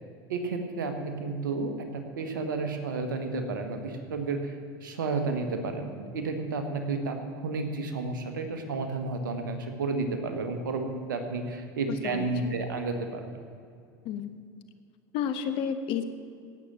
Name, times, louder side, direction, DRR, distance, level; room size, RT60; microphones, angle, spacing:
voice 1, 0.3-4.6 4.8-13.3, right 3 dB, 90° right, 6 dB, 1.6 m, -32 dB
voice 2, 12.0-12.5 14.0-14.3 15.1-16.0, left 8 dB, 60° left, 10 dB, 1.2 m, -31 dB
17.5 x 6.9 x 7.6 m, 2.3 s
hypercardioid pair, 85°, 10 cm